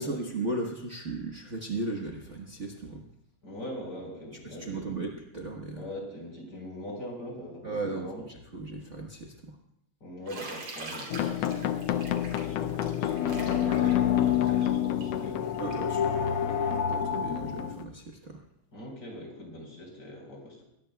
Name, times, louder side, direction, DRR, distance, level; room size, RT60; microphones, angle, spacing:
voice 1, 0.0-3.0 4.4-5.8 7.6-8.1 8.5-9.6 15.6-18.4, right 2 dB, 80° right, 0 dB, 0.6 m, -36 dB
voice 2, 3.4-5.1 5.8-8.3 10.0-15.8 18.7-20.6, equal, 30° left, 0 dB, 4.9 m, -42 dB
Bathtub (filling or washing), 10.3-15.9, right 2 dB, 50° right, 4.1 m, -43 dB
sound 1, 11.1-17.8, left 10 dB, 90° left, 1.3 m, -33 dB
sound 2, 11.9-17.7, left 9 dB, 60° left, 1.5 m, -28 dB
22.5 x 18.0 x 2.3 m, 0.81 s
omnidirectional pair, 3.5 m